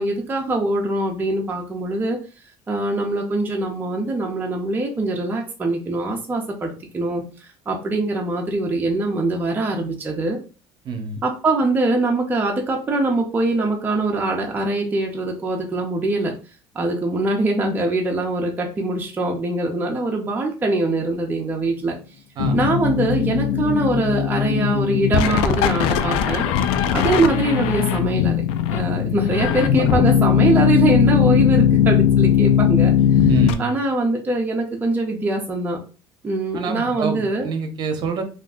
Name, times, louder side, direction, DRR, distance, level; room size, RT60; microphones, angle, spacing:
voice 1, 0.0-2.2 2.7-7.2 7.7-10.4 11.2-16.3 16.7-21.9 22.5-26.4 26.9-28.4 28.7-32.9 33.6-35.8 36.2-37.5, right 2 dB, 20° right, 0 dB, 0.6 m, -23 dB
voice 2, 10.8-11.2 22.4-22.6 33.0-33.7 36.5-38.2, right 5 dB, 50° right, 5 dB, 0.8 m, -27 dB
sound 1, 22.4-33.5, left 8 dB, 75° left, 0.4 m, -19 dB
2.4 x 2.2 x 3.6 m, 0.35 s
cardioid pair, 115°, 10 cm